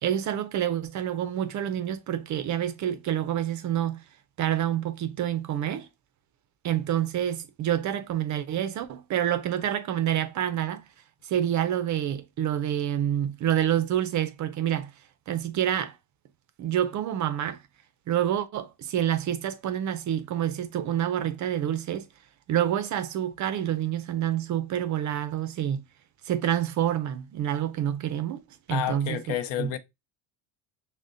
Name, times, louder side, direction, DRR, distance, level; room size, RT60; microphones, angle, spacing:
voice 1, 0.0-4.0 4.4-5.9 6.6-10.8 11.2-14.9 15.3-16.0 16.6-17.6 18.1-22.1 22.5-25.8 26.2-28.4 28.7-29.2 29.6-29.7, right 11 dB, 40° right, 0.4 m, -27 dB
voice 2, 28.7-29.8, left 11 dB, 65° left, 0.6 m, -30 dB
6.1 x 2.1 x 2.6 m
cardioid pair, 140°, 49 cm